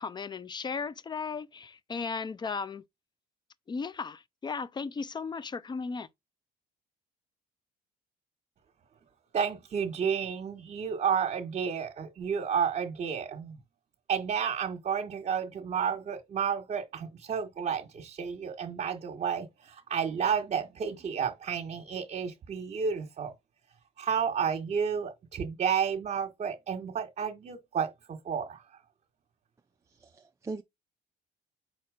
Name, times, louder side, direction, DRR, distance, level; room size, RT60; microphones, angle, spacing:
voice 1, 0.0-2.8 3.7-6.1, left 5 dB, 25° left, 0.6 m, -36 dB
voice 2, 9.3-13.6 14.1-23.3 24.0-28.6, right 7 dB, 45° right, 1.3 m, -31 dB
voice 3, 30.0-30.6, right 3 dB, 15° right, 0.5 m, -40 dB
5.6 x 4.3 x 4.9 m
cardioid pair, 110°, 17 cm